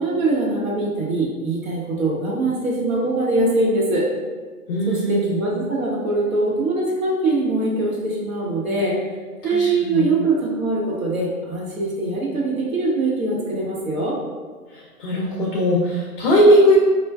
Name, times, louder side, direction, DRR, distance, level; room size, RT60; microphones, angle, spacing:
voice 1, 0.0-4.1 4.9-9.0 9.4-14.2, right 2 dB, 65° right, -4 dB, 1.1 m, -22 dB
voice 2, 4.7-5.3 9.4-10.1 14.7-16.8, equal, 40° left, -4 dB, 0.5 m, -19 dB
4.4 x 2.4 x 2.3 m, 1.4 s
hypercardioid pair, 150°, 45 cm